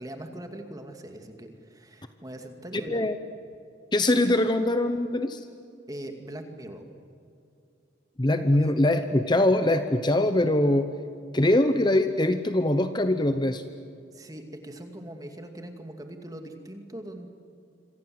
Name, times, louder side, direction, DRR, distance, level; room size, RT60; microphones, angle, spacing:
voice 1, 0.0-3.1 5.9-6.8 14.1-17.3, right 1 dB, 20° right, 5 dB, 2.3 m, -41 dB
voice 2, 2.7-3.2 3.9-5.4 8.2-10.9 11.3-13.6, left 1 dB, 25° left, 9 dB, 0.9 m, -23 dB
27.0 x 25.0 x 7.8 m, 2.5 s
head